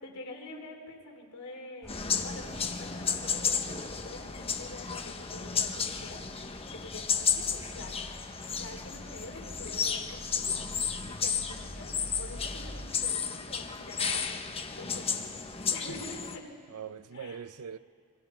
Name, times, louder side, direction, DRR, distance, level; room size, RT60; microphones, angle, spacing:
voice 1, 0.0-5.7 6.0-6.2 6.7-7.9 8.5-10.4 11.1-14.3 14.7-15.1 15.7-16.5 17.1-17.4, left 2 dB, 80° left, 3.3 m, -46 dB
sound 1, 1.8-12.9, equal, 5° left, 5.3 m, -47 dB
sound 2, 1.9-16.4, left 6 dB, 25° left, 1.0 m, -33 dB
voice 2, 2.3-2.7 15.9-16.0 16.7-17.8, right 7 dB, 75° right, 0.6 m, -42 dB
26.5 x 24.5 x 4.5 m
head